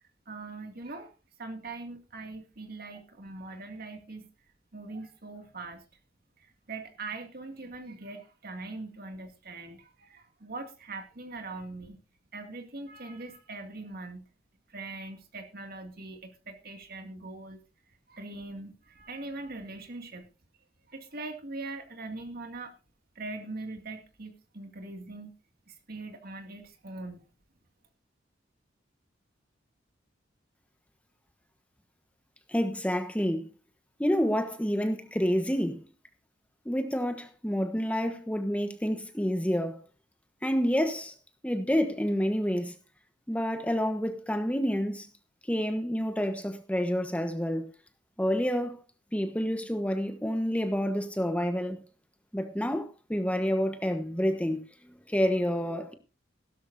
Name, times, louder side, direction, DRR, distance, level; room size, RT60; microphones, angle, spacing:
voice 1, 0.3-1.1 1.4-4.3 4.7-5.8 6.7-12.0 12.3-14.2 14.7-17.6 18.1-20.3 20.9-22.7 23.2-25.3 25.7-27.2, right 2 dB, 55° right, 2.3 m, -41 dB
voice 2, 32.5-33.5 34.0-35.8 36.6-39.8 40.4-41.1 41.4-42.7 43.3-45.1 45.5-47.7 48.2-48.8 49.1-51.8 52.3-54.6 55.1-55.9, equal, 5° left, 1.2 m, -28 dB
16.5 x 12.5 x 2.7 m
head